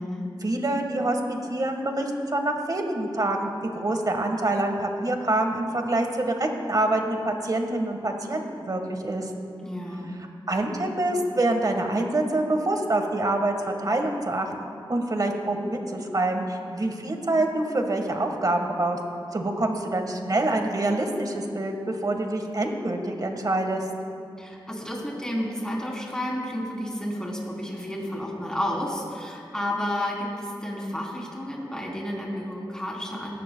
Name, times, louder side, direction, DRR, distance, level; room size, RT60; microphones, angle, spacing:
voice 1, 0.4-9.3 10.5-14.5 14.9-19.0 19.3-23.8, right 2 dB, 45° right, 4 dB, 1.5 m, -26 dB
voice 2, 9.6-10.1 24.4-33.3, left 1 dB, 10° left, -3 dB, 3.3 m, -31 dB
18.0 x 14.0 x 2.3 m, 2.5 s
cardioid pair, 60°, 9 cm